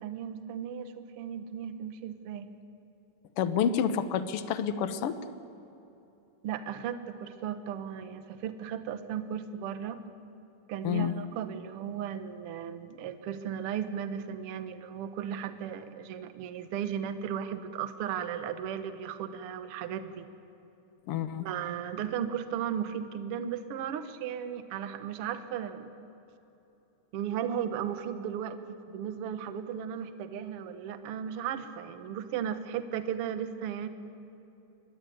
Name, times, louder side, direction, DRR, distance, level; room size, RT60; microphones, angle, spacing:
voice 1, 0.0-2.5 6.4-10.0 10.7-20.3 21.4-25.9 27.1-28.6 28.9-33.9, right 9 dB, 60° right, 10 dB, 1.7 m, -35 dB
voice 2, 3.4-5.1 10.8-11.1 21.1-21.5, left 8 dB, 65° left, 12 dB, 1.4 m, -28 dB
24.0 x 19.5 x 9.4 m, 2.9 s
omnidirectional pair, 3.9 m